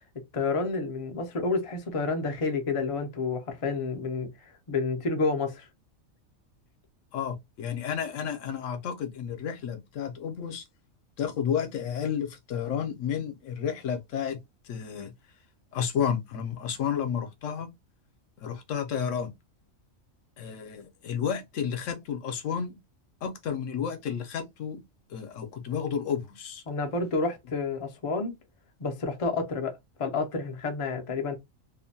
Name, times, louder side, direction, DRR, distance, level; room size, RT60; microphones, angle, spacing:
voice 1, 0.3-5.7 26.7-28.3 28.8-31.3, left 3 dB, 55° left, 0.3 m, -30 dB
voice 2, 7.1-10.6 11.2-14.4 14.6-15.1 15.7-17.7 18.4-19.3 20.4-22.8 23.2-24.8 25.1-26.6, left 8 dB, 70° left, 0.9 m, -31 dB
2.7 x 2.1 x 2.6 m
omnidirectional pair, 1.4 m